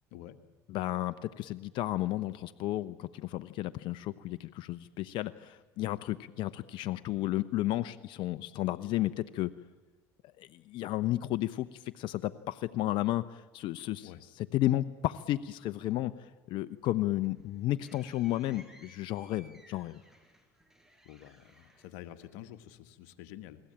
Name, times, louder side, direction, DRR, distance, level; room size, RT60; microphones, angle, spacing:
voice 1, 0.7-9.5 10.4-14.1 14.4-20.0, left 15 dB, 65° left, 13 dB, 0.9 m, -33 dB
sound 1, 16.9-22.7, equal, 5° right, 6.3 m, -60 dB
voice 2, 21.0-23.6, left 12 dB, 80° left, 10 dB, 1.6 m, -48 dB
29.0 x 21.0 x 8.8 m, 1.3 s
supercardioid pair, 90°, 9 cm